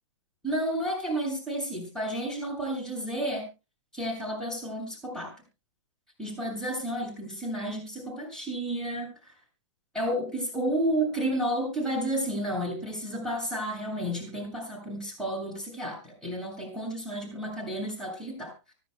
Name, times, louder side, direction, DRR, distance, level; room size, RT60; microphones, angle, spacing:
voice 1, 0.4-3.5 3.9-5.3 6.2-9.1 9.9-18.5, right 1 dB, 5° left, -2 dB, 7.5 m, -31 dB
25.0 x 10.5 x 2.3 m, 0.29 s
figure-of-eight pair, 110°, 16 cm